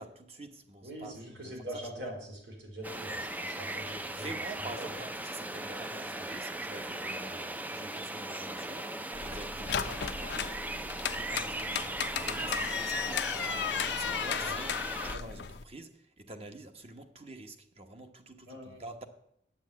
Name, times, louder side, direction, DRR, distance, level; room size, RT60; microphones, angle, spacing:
voice 1, 0.0-1.1 1.4-2.1 3.9-14.7 15.0-19.0, right 2 dB, 35° right, 1.1 m, -47 dB
voice 2, 0.8-4.3 4.8-4.9 14.4-14.6 18.5-18.8, right 1 dB, 90° right, 4.5 m, -43 dB
sound 1, 2.8-15.2, right 1 dB, 10° right, 0.4 m, -38 dB
sound 2, 9.1-15.6, left 8 dB, 70° left, 0.5 m, -35 dB
9.0 x 8.2 x 8.6 m
head